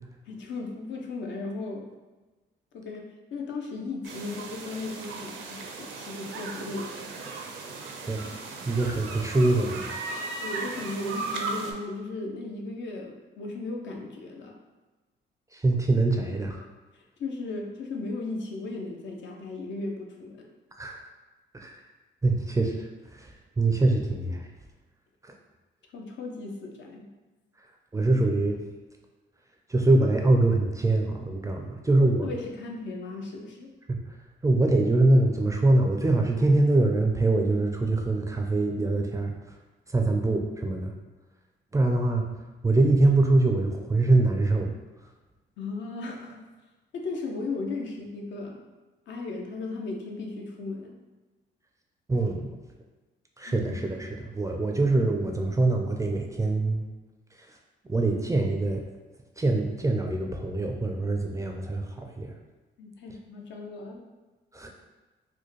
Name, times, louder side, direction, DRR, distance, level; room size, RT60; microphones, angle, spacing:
voice 1, 0.3-1.9 2.7-7.1 10.4-14.6 16.9-20.5 25.9-27.1 32.2-33.7 45.6-46.5 46.9-48.6 49.1-50.9 53.5-53.7 62.8-64.0, left 3 dB, 65° left, 1 dB, 0.6 m, -36 dB
sound 1, 4.0-11.7, right 3 dB, 75° right, 0.5 m, -37 dB
voice 2, 8.7-10.0 15.5-16.7 20.8-21.1 21.5-21.8 22.2-24.5 27.9-28.6 29.7-32.3 33.9-34.0 34.4-39.3 39.9-40.9 41.7-42.3 42.6-44.7 52.1-52.6 53.4-56.8 57.9-58.8 59.4-62.3 64.5-64.7, right 2 dB, 15° right, 2 dB, 0.4 m, -24 dB
4.3 x 2.2 x 3.1 m, 1.2 s
cardioid pair, 90°, 20 cm